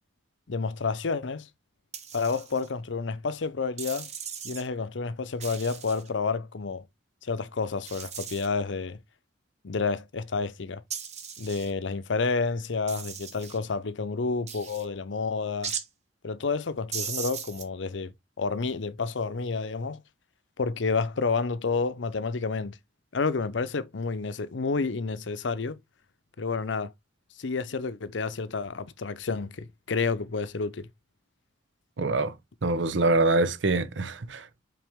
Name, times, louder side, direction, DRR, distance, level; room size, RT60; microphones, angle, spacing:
voice 1, 0.5-1.5 2.1-4.1 4.4-6.8 7.2-9.0 9.6-10.8 11.4-15.7 16.2-18.1 18.4-20.0 20.6-22.8 23.1-25.8 26.4-26.9 27.4-30.9, left 4 dB, 85° left, 0.7 m, -30 dB
sound 1, 1.9-2.7 3.8-4.7 5.4-6.1 7.8-8.5 10.9-11.7 12.9-13.6 14.5-14.8 15.6-15.9 16.9-17.6, right 7 dB, 40° right, 1.2 m, -37 dB
voice 2, 32.0-32.3 32.6-34.6, right 3 dB, 85° right, 0.8 m, -25 dB
6.0 x 5.0 x 3.6 m
head